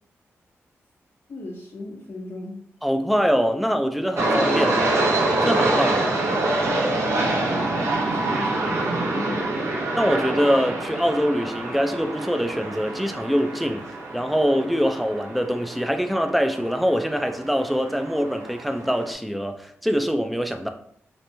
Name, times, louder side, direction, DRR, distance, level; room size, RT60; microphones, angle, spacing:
voice 1, 1.3-2.6 7.1-9.7, left 2 dB, 60° left, -4 dB, 0.6 m, -36 dB
voice 2, 2.8-4.9 5.4-6.0 10.0-13.8 14.1-20.7, equal, ahead, 6 dB, 0.4 m, -23 dB
sound 1, 4.2-19.1, right 2 dB, 70° right, 0.8 m, -26 dB
2.9 x 2.5 x 3.2 m, 0.62 s
cardioid pair, 80°, 5 cm